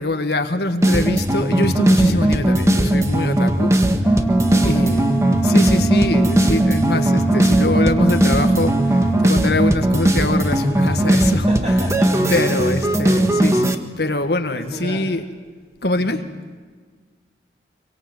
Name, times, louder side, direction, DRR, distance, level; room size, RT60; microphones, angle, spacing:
voice 1, 0.0-3.8 4.6-11.7 12.3-15.2 15.8-16.2, left 2 dB, 60° left, 6 dB, 1.7 m, -23 dB
sound 1, 0.8-13.7, right 1 dB, 15° right, 1.5 m, -18 dB
voice 2, 2.1-2.6 4.5-5.6 11.3-12.7 14.5-15.1 15.9-16.2, equal, 35° right, 2 dB, 7.0 m, -33 dB
sound 2, 4.0-9.2, right 4 dB, 5° left, 4.3 m, -23 dB
26.0 x 24.5 x 8.0 m, 1.5 s
head